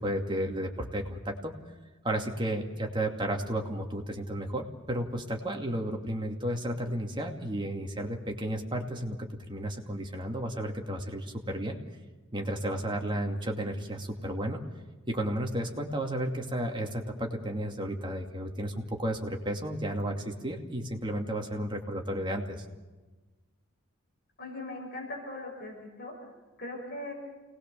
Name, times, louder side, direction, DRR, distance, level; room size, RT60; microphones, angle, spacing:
voice 1, 0.0-1.5 2.0-11.8 12.3-14.6 15.1-22.6, right 1 dB, 20° right, 2 dB, 2.5 m, -33 dB
voice 2, 24.4-26.1 26.6-27.1, left 2 dB, 45° left, 0 dB, 6.5 m, -39 dB
28.0 x 20.0 x 7.0 m, 1.2 s
head